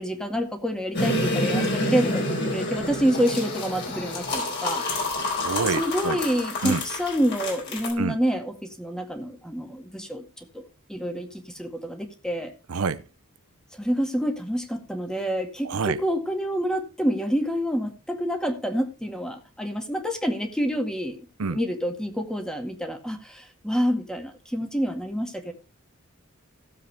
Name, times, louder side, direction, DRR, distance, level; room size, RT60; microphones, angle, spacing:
voice 1, 0.0-4.8 5.8-10.6 10.9-12.5 13.7-25.5, equal, 5° left, 4 dB, 1.9 m, -28 dB
sound 1, 0.9-7.9, left 1 dB, 50° left, 4.2 m, -28 dB
voice 2, 5.4-6.2 6.6-6.8 8.0-8.2 12.7-13.0 15.6-16.0 21.4-21.6, right 4 dB, 80° right, 13 dB, 0.7 m, -27 dB
17.0 x 7.6 x 3.4 m, 0.30 s
head